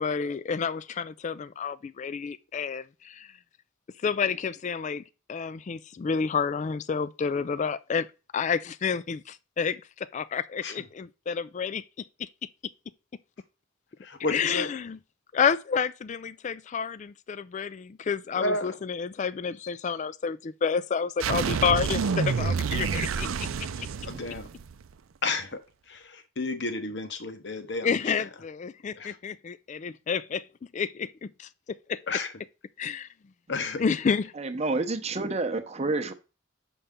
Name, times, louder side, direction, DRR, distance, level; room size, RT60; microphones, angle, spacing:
voice 1, 0.0-3.3 4.0-5.0 5.3-8.1 8.3-11.8 12.2-12.3 14.3-15.0 15.3-23.5 23.8-23.9 27.8-30.4 30.7-31.5 31.9-32.0 32.8-33.1 33.8-34.3, left 6 dB, 35° left, 0.3 m, -29 dB
voice 2, 14.0-14.7 18.3-18.8 24.0-24.5 25.2-25.6 25.9-28.1 29.0-29.2 32.1-32.3 33.5-33.9, left 3 dB, 60° left, 1.0 m, -32 dB
sound 1, 21.2-24.9, right 5 dB, 90° right, 0.5 m, -28 dB
voice 3, 34.4-36.1, right 3 dB, 30° right, 0.8 m, -29 dB
6.8 x 5.5 x 3.7 m
head